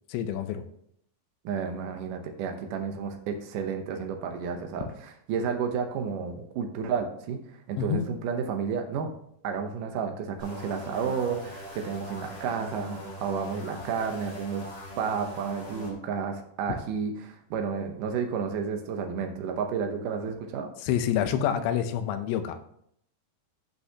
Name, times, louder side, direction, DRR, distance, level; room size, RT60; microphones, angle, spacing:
voice 1, 0.1-0.6 7.8-8.1 20.8-22.6, left 9 dB, 85° left, 9 dB, 3.0 m, -27 dB
voice 2, 1.4-7.4 7.7-9.1 9.4-14.7 15.0-20.7, right 6 dB, 75° right, 4 dB, 1.9 m, -31 dB
sound 1, 10.4-15.9, equal, 30° left, 3.1 m, -41 dB
14.0 x 5.6 x 2.8 m, 0.70 s
omnidirectional pair, 4.9 m